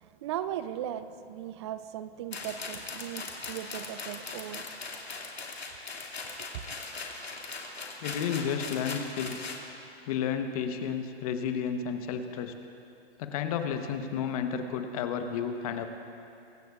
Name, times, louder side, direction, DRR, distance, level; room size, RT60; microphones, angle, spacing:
voice 1, 0.0-4.6 6.5-6.6, right 11 dB, 25° right, 12 dB, 0.5 m, -38 dB
sound 1, 2.3-9.6, left 3 dB, 80° left, 2.5 m, -40 dB
voice 2, 8.0-9.5 10.1-12.5 13.2-15.9, left 7 dB, 35° left, 7 dB, 1.1 m, -32 dB
24.0 x 18.0 x 2.5 m, 2.7 s
figure-of-eight pair, 130°, 31 cm